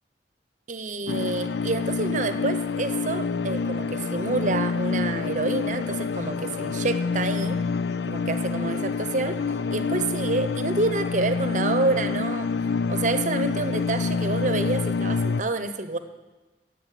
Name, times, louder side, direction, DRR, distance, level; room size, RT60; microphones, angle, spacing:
voice 1, 0.7-7.6 8.1-9.4 9.7-12.5 12.9-16.0, right 3 dB, 45° right, 10 dB, 0.9 m, -28 dB
sound 1, 1.1-15.4, left 4 dB, 70° left, 0.4 m, -27 dB
17.0 x 8.3 x 7.6 m, 1.2 s
head